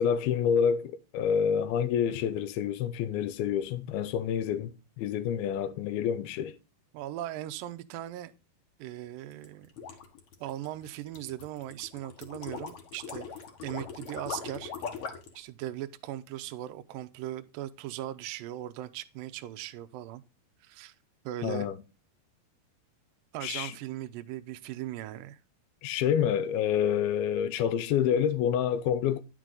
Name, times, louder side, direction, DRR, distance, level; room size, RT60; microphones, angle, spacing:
voice 1, 0.0-6.5 21.4-21.8 23.4-23.8 25.8-29.2, left 8 dB, 85° left, 2.6 m, -28 dB
voice 2, 6.9-8.3 8.8-9.7 10.4-13.3 13.6-14.7 15.4-20.2 20.6-20.9 21.3-21.7 23.3-25.4, right 13 dB, 80° right, 2.1 m, -38 dB
sound 1, 9.3-15.4, left 6 dB, 55° left, 1.6 m, -40 dB
10.5 x 6.2 x 3.8 m
omnidirectional pair, 4.6 m